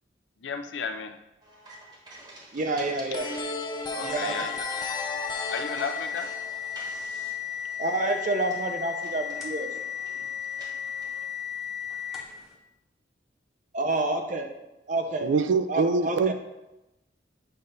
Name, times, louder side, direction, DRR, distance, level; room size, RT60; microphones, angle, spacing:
voice 1, 0.4-1.2 2.8-2.9 3.9-4.6 5.5-6.3, left 5 dB, 80° left, 7 dB, 0.5 m, -34 dB
sound 1, 1.4-4.9 5.3-6.3 6.7-7.3 8.0-8.1 8.4-11.2, right 1 dB, 25° right, 1.1 m, -46 dB
voice 2, 2.5-3.3 4.0-4.4 7.8-9.7 13.7-14.5 14.9-15.3 15.7-16.3, right 2 dB, 45° right, 5 dB, 0.7 m, -28 dB
sound 2, 3.1-7.8, left 3 dB, 25° left, 0.4 m, -35 dB
sound 3, 3.9-12.5, left 8 dB, ahead, 1.0 m, -35 dB
voice 3, 15.2-16.3, right 4 dB, 85° right, 11 dB, 0.4 m, -24 dB
7.7 x 2.6 x 5.4 m, 0.98 s
head